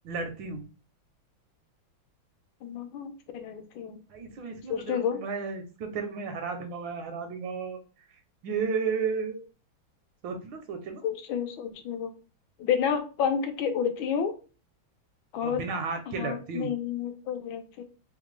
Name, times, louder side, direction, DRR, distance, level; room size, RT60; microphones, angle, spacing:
voice 1, 0.0-0.7 4.1-7.8 8.4-9.4 10.2-11.0 15.4-16.7, right 5 dB, 75° right, 5 dB, 1.2 m, -33 dB
voice 2, 2.6-4.0 4.7-5.2 11.0-12.1 12.6-14.3 15.3-15.6 16.1-17.8, left 8 dB, 85° left, 7 dB, 1.4 m, -30 dB
3.5 x 2.1 x 3.1 m, 0.34 s
omnidirectional pair, 2.2 m